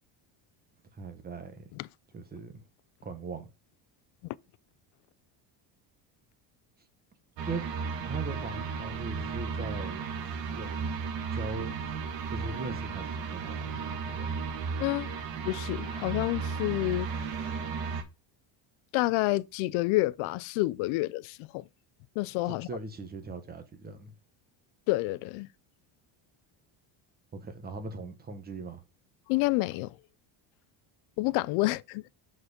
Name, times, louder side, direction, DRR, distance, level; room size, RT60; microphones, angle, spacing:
voice 1, 0.9-1.7 2.1-2.7 3.0-3.5 7.5-7.7 8.0-10.0 10.5-10.7 11.3-11.8 12.2-14.3 22.5-24.1 27.3-28.8, right 3 dB, 20° right, 1.2 m, -40 dB
sound 1, 7.4-18.0, right 5 dB, 65° right, 1.4 m, -34 dB
voice 2, 14.8-15.1 15.4-17.1 18.9-21.6 22.2-22.7 24.9-25.5 29.3-30.0 31.2-32.0, left 19 dB, 85° left, 0.6 m, -28 dB
6.0 x 4.8 x 4.9 m
cardioid pair, 165°, 47 cm